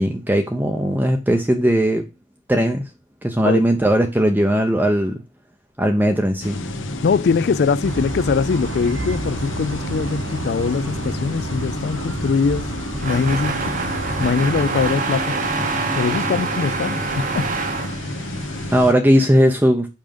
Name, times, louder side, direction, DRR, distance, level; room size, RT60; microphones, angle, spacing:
voice 1, 0.0-2.1 2.5-2.9 3.2-5.2 5.8-6.6 18.7-19.9, equal, 10° right, 0.6 m, -18 dB
sound 1, 6.4-18.9, left 1 dB, 70° left, 1.0 m, -30 dB
voice 2, 7.0-12.7 13.0-13.6 14.2-15.4 15.9-17.5, left 5 dB, 55° left, 0.3 m, -22 dB
sound 2, 7.8-14.9, right 3 dB, 70° right, 0.7 m, -31 dB
sound 3, 13.0-18.7, right 4 dB, 40° right, 0.8 m, -26 dB
5.6 x 5.0 x 5.1 m
head